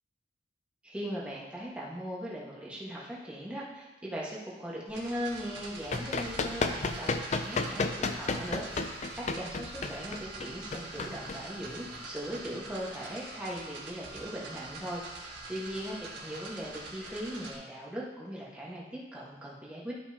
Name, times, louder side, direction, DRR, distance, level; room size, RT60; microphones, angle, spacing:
voice 1, 0.8-8.6 8.9-19.9, equal, 5° right, -6 dB, 1.4 m, -39 dB
sound 1, 4.9-17.5, right 2 dB, 65° right, 1.6 m, -44 dB
Run, 5.5-12.0, left 3 dB, 35° left, 0.4 m, -33 dB
12.0 x 5.5 x 2.9 m, 1.1 s
head